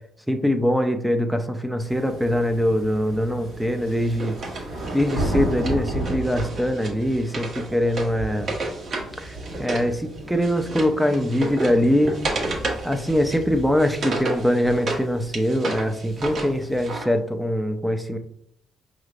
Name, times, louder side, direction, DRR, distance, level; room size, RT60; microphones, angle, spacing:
voice 1, 0.3-4.4 4.9-8.6 9.2-12.2 12.8-18.2, equal, 5° right, 6 dB, 0.5 m, -23 dB
sound 1, 1.8-17.0, right 1 dB, 90° right, 1.5 m, -35 dB
Wood, 3.9-9.9 10.2-15.0 15.3-17.1, right 2 dB, 60° right, 1.2 m, -32 dB
5.4 x 3.2 x 2.5 m, 0.68 s
cardioid pair, 90°, 0 cm